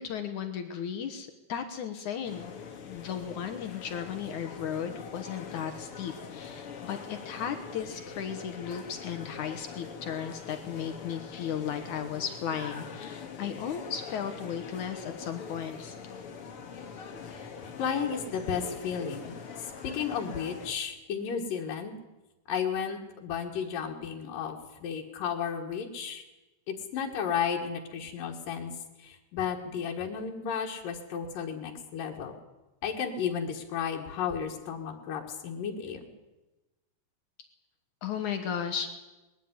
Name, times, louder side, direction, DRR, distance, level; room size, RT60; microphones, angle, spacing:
voice 1, 0.0-2.5 2.9-15.9 38.0-39.0, left 8 dB, 70° left, 7 dB, 2.6 m, -35 dB
sound 1, 2.2-20.7, left 6 dB, 50° left, 2.3 m, -43 dB
voice 2, 17.8-21.9 22.5-26.2 26.7-28.7 29.0-32.4 32.8-36.0, left 7 dB, 90° left, 1 dB, 3.4 m, -33 dB
20.5 x 14.5 x 9.7 m, 1.1 s
omnidirectional pair, 3.8 m